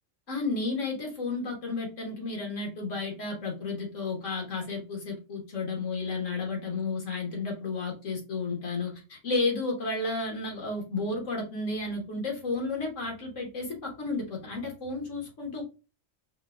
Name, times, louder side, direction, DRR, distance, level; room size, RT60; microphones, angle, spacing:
voice 1, 0.3-15.6, left 3 dB, 75° left, 0 dB, 1.7 m, -32 dB
4.7 x 2.3 x 2.3 m, 0.30 s
omnidirectional pair, 1.3 m